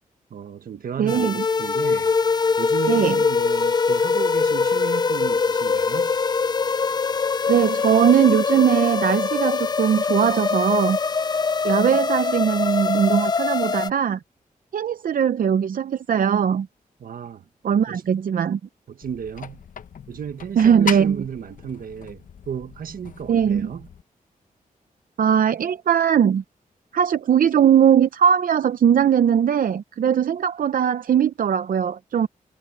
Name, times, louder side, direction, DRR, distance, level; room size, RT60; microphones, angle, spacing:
voice 1, 0.3-2.1 2.6-6.1 17.0-17.4 17.9-18.0 18.9-19.6 20.1-23.9, right 8 dB, 90° right, 1.5 m, -34 dB
voice 2, 1.0-1.4 2.9-3.2 7.5-11.0 11.6-14.2 14.7-16.7 17.6-18.6 20.6-21.2 23.3-23.7 25.2-26.4 26.9-32.3, right 8 dB, 75° right, 0.6 m, -20 dB
sound 1, 1.1-13.9, left 5 dB, 30° left, 0.4 m, -23 dB
sound 2, 19.0-24.0, left 7 dB, 70° left, 0.8 m, -37 dB
wide cardioid pair, 135°, 14 cm